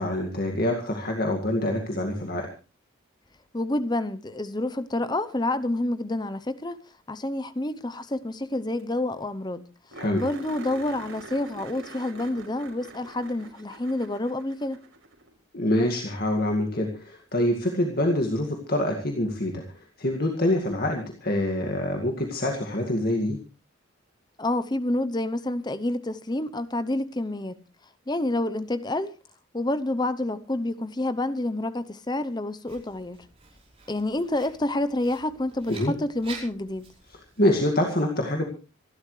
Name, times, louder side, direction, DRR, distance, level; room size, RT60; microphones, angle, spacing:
voice 1, 0.0-2.5 9.9-10.2 15.5-23.4 35.7-35.9 37.4-38.4, left 1 dB, 50° left, 2.1 m, -25 dB
voice 2, 3.5-6.8 7.1-9.6 10.1-14.8 24.4-27.6 28.1-29.1 29.5-33.2 33.9-36.9, left 1 dB, 20° left, 0.7 m, -28 dB
sound 1, 8.5-8.6 8.8-8.9 9.2-9.3 9.9-15.3 17.7-17.8 20.6-20.7, right 2 dB, 80° right, 5.5 m, -44 dB
Writing, 32.7-37.7, right 4 dB, 25° right, 5.3 m, -47 dB
26.5 x 12.0 x 3.2 m
head